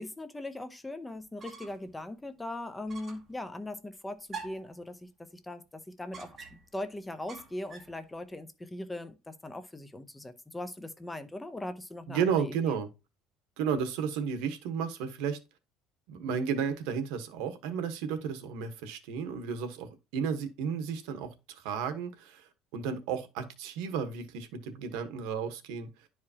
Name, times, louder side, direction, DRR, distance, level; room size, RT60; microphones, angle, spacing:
voice 1, 0.0-12.8, left 1 dB, 10° left, 0.7 m, -40 dB
sound 1, 1.2-1.9 2.3-2.4 2.9-3.3 4.3-4.8 6.1-6.8 7.3-8.0, right 5 dB, 25° right, 1.4 m, -45 dB
voice 2, 12.1-12.9 13.6-15.4 16.1-25.9, right 7 dB, 85° right, 1.2 m, -33 dB
11.0 x 4.8 x 2.8 m
cardioid pair, 155°, 0 cm